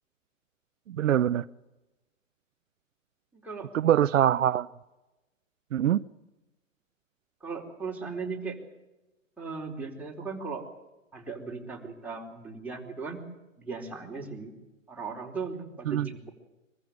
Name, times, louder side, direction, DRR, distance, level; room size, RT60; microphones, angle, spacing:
voice 1, 0.9-1.4 3.7-4.7 5.7-6.0 15.9-16.1, right 11 dB, 75° right, 0.7 m, -23 dB
voice 2, 7.4-8.6 9.4-10.6 11.1-13.2 13.6-14.5 14.9-16.3, right 4 dB, 5° right, 4.2 m, -37 dB
24.0 x 15.0 x 9.3 m
hypercardioid pair, 125°, 39 cm